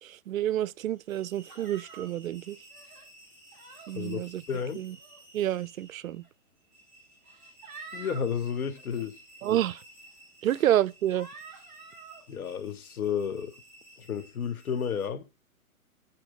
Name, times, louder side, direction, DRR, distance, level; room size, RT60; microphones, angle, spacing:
voice 1, 0.0-2.6 3.9-4.4 4.7-5.0 5.3-6.2 9.4-9.8 10.4-11.3, right 12 dB, 65° right, 0.5 m, -29 dB
sound 1, 0.9-15.1, right 1 dB, 20° left, 3.7 m, -55 dB
sound 2, 1.5-2.1 2.7-3.1 3.5-3.9 4.8-5.2 6.2-6.3 7.2-8.3 8.7-9.0 9.7-9.8 10.4-10.7 11.1-12.2, right 4 dB, 15° right, 5.0 m, -48 dB
voice 2, 4.5-4.8 7.9-9.2 12.3-13.5 14.0-15.2, left 7 dB, 70° left, 1.2 m, -32 dB
9.8 x 4.5 x 5.1 m
hypercardioid pair, 160°, 44 cm